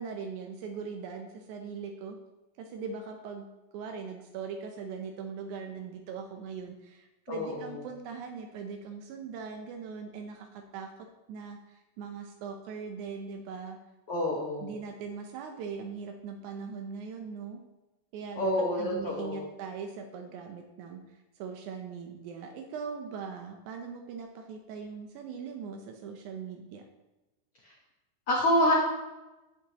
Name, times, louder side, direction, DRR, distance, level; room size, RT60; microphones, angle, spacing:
voice 1, 0.0-2.2 2.6-3.5 3.7-10.9 11.3-13.8 14.6-17.6 18.1-18.5 18.8-26.8, right 5 dB, 85° right, 4 dB, 1.7 m, -40 dB
voice 2, 7.3-7.8 14.1-14.7 18.4-19.5 28.3-28.7, left 1 dB, 80° left, -2 dB, 1.3 m, -27 dB
10.0 x 8.3 x 2.9 m, 1.0 s
omnidirectional pair, 4.4 m